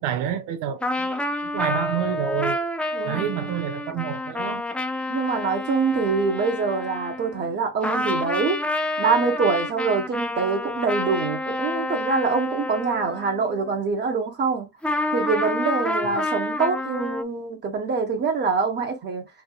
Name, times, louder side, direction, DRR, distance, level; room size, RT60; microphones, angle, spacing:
voice 1, 0.0-2.6 3.0-4.7, right 9 dB, 75° right, 0.8 m, -28 dB
sound 1, 0.8-7.6 7.8-13.8 14.8-17.2, left 1 dB, 5° left, 0.3 m, -28 dB
voice 2, 2.9-3.3 5.1-8.6 9.0-14.7 15.1-19.3, right 4 dB, 35° right, 1.2 m, -24 dB
3.9 x 3.5 x 2.3 m
cardioid pair, 145°, 32 cm